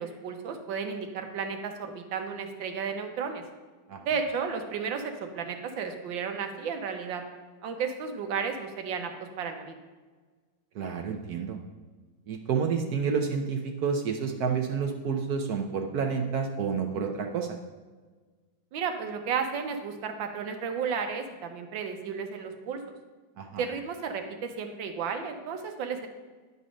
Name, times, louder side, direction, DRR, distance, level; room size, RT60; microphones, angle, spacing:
voice 1, 0.0-3.4 4.0-7.2 7.6-9.7 18.7-22.8 23.6-26.1, right 6 dB, 85° right, 6 dB, 1.6 m, -33 dB
voice 2, 10.7-11.6 12.3-17.5 23.4-23.6, right 6 dB, 65° right, 3 dB, 1.1 m, -29 dB
9.9 x 4.1 x 6.2 m, 1.4 s
omnidirectional pair, 2.0 m